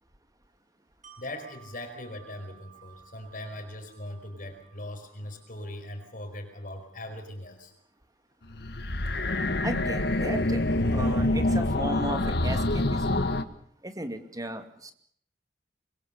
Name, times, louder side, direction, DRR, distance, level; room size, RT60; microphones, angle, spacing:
Wind chime, 1.0-6.8 7.2-7.4, right 8 dB, 45° right, 7.6 m, -57 dB
voice 1, 1.2-7.7, left 1 dB, 50° left, 6 dB, 4.8 m, -40 dB
sound 1, 8.5-13.4, left 1 dB, 65° left, 1.7 m, -26 dB
voice 2, 9.6-10.6 10.9-13.3 13.8-14.9, right 1 dB, 20° right, 8 dB, 2.5 m, -35 dB
26.0 x 22.5 x 6.8 m, 0.63 s
head